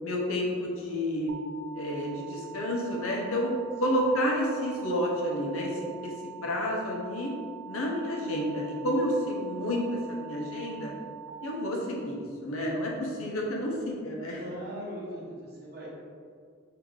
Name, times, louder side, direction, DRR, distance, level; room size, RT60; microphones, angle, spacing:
voice 1, 0.0-1.3 1.7-3.5 3.8-6.1 6.4-7.3 7.6-10.9 11.4-14.4, equal, 90° left, -2 dB, 0.9 m, -30 dB
sound 1, 1.3-11.3, right 5 dB, 75° right, 0.6 m, -45 dB
voice 2, 14.3-15.9, equal, 50° right, -5 dB, 1.1 m, -39 dB
4.7 x 2.9 x 3.7 m, 2.2 s
head